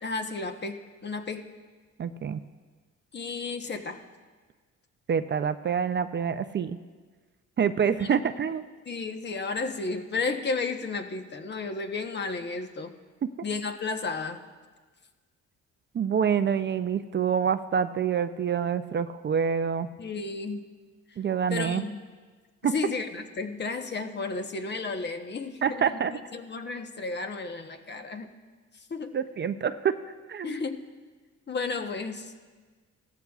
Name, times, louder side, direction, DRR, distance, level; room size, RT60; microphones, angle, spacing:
voice 1, 0.0-1.4 3.1-4.0 7.9-8.2 8.9-12.9 13.4-14.4 20.0-20.7 21.5-22.0 22.6-25.9 26.1-28.3 28.7-29.2 30.4-30.8 31.5-32.3, left 4 dB, 35° left, 6 dB, 1.0 m, -33 dB
voice 2, 2.0-2.4 5.1-6.8 7.6-8.6 13.2-13.3 15.9-19.9 21.2-21.8 22.6-22.7 25.6-26.2 29.1-30.0 30.3-30.6, right 7 dB, 35° right, 10 dB, 0.5 m, -26 dB
17.5 x 14.0 x 2.4 m, 1.4 s
cardioid pair, 90°, 30 cm